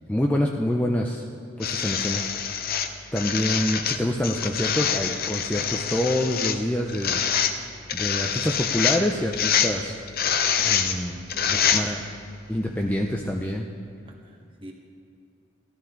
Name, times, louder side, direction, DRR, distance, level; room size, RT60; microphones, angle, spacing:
voice 1, 0.1-1.2 1.6-2.2 3.1-7.2 7.9-9.9 10.6-11.2 11.5-12.0 12.5-13.7, left 1 dB, 5° left, 0 dB, 0.5 m, -26 dB
sound 1, 1.6-12.2 13.2-13.3, left 7 dB, 45° left, 0.7 m, -25 dB
voice 2, 11.3-12.1 14.1-14.7, right 1 dB, 25° right, 0 dB, 1.5 m, -45 dB
16.0 x 12.5 x 3.9 m, 2.5 s
head